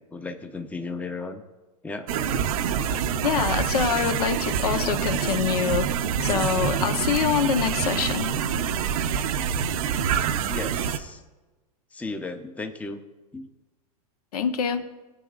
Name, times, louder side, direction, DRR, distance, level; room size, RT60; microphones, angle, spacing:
voice 1, 0.0-1.4 1.8-2.2 9.3-9.6 10.5-11.2 11.9-13.0 13.3-13.5, left 3 dB, 5° left, 7 dB, 0.7 m, -35 dB
sound 1, 2.1-11.0, right 8 dB, 65° right, 0.8 m, -26 dB
voice 2, 2.9-5.9 6.2-8.3 14.3-14.8, left 8 dB, 75° left, 7 dB, 1.0 m, -25 dB
19.0 x 8.5 x 2.4 m, 1.2 s
hypercardioid pair, 120°, 20 cm